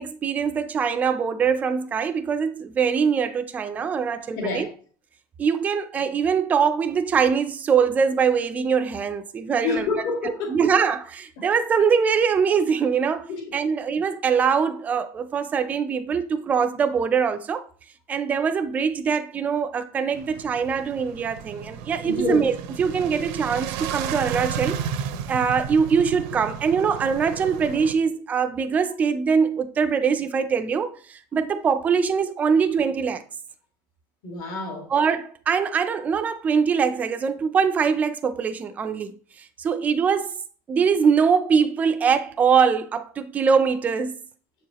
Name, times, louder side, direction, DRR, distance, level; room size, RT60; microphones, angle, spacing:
voice 1, 0.0-4.7 5.4-9.9 10.5-13.3 13.5-17.6 18.1-22.5 22.8-24.8 25.3-30.9 31.3-33.2 34.9-39.1 39.6-40.3 40.7-44.2, right 6 dB, 20° right, 0.4 m, -22 dB
voice 2, 4.4-4.7 9.6-10.7 11.4-11.5 13.3-13.4 22.0-22.5 34.2-34.9, left 3 dB, 60° left, 2.0 m, -28 dB
sound 1, 20.1-27.9, right 8 dB, 75° right, 0.7 m, -33 dB
7.4 x 4.7 x 2.9 m
cardioid pair, 180°, 8 cm